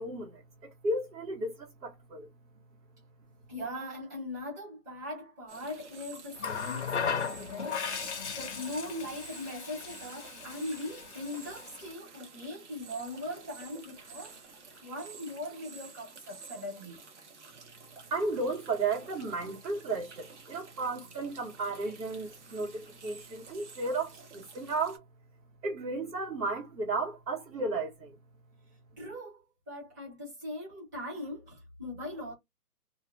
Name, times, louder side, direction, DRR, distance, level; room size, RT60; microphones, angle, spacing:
voice 1, 0.0-2.3 18.1-25.0 25.6-28.2, right 3 dB, 70° right, 1.6 m, -34 dB
voice 2, 3.5-14.4 14.8-17.0 29.0-32.3, left 1 dB, 10° right, 0.9 m, -40 dB
sound 1, 5.5-25.0, right 5 dB, 45° right, 1.0 m, -51 dB
Water tap faucet, 6.4-11.9 13.1-13.3, left 6 dB, 45° left, 0.6 m, -37 dB
2.7 x 2.4 x 2.5 m
hypercardioid pair, 165°, 48 cm